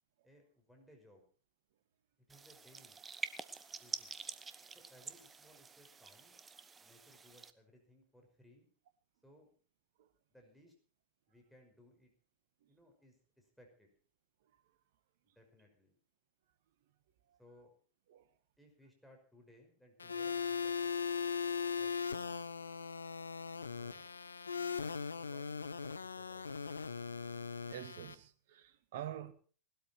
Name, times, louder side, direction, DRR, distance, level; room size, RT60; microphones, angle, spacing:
voice 1, 0.2-1.2 2.2-3.0 3.7-4.1 4.7-6.4 6.8-8.7 9.2-9.5 10.3-10.7 11.3-12.1 12.7-13.9 15.2-16.0 17.4-17.7 18.6-20.9 21.7-22.0 23.7-24.1 25.2-26.8, left 1 dB, ahead, 5.7 m, -63 dB
sound 1, 2.3-7.5, right 5 dB, 15° right, 1.1 m, -47 dB
voice 2, 14.4-14.7 15.3-15.4 17.3-17.4 18.1-18.4 21.4-21.5 22.4-22.5 24.6-25.0 27.7-29.3, right 11 dB, 55° right, 1.7 m, -49 dB
sound 2, 20.0-28.1, left 6 dB, 75° left, 0.8 m, -39 dB
19.0 x 13.0 x 4.6 m
figure-of-eight pair, 90°, 0 cm